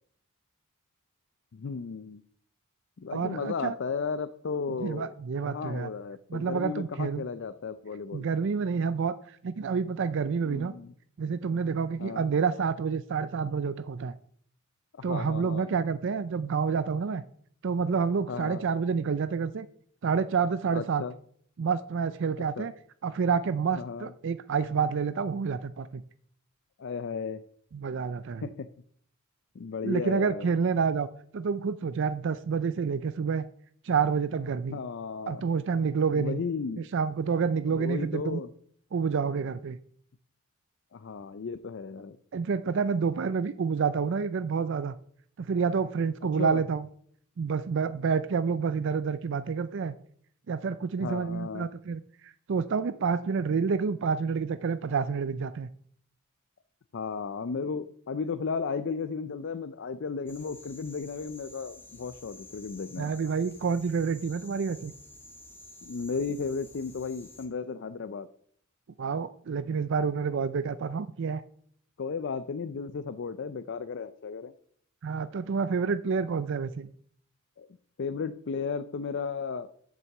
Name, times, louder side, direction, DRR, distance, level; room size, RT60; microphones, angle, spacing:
voice 1, 1.5-2.2 3.0-5.1 5.5-8.3 10.4-10.9 12.0-12.2 15.0-15.7 18.3-18.6 20.7-21.1 22.6-22.7 23.7-24.1 26.8-27.4 28.4-28.7 29.5-30.5 34.7-35.4 36.1-36.9 37.7-38.5 40.9-42.2 46.3-46.6 51.0-51.7 56.9-63.1 65.8-68.3 72.0-74.5 77.6-77.7 78.0-79.7, left 5 dB, 55° left, 11 dB, 0.4 m, -34 dB
voice 2, 3.1-3.7 4.8-5.9 6.3-7.2 8.1-9.2 9.4-10.7 11.2-14.1 15.0-17.2 17.6-19.7 20.0-21.0 21.6-22.7 23.0-26.0 27.7-28.5 29.8-31.1 31.3-33.5 33.8-34.8 35.3-36.4 36.9-38.4 38.9-39.8 42.3-45.0 45.4-46.9 47.4-49.9 50.5-55.7 63.0-64.9 69.0-71.4 75.0-76.9, right 5 dB, 60° right, 13 dB, 0.4 m, -28 dB
sound 1, 60.3-67.5, left 2 dB, 10° left, 1.6 m, -51 dB
7.5 x 6.4 x 7.1 m, 0.62 s
head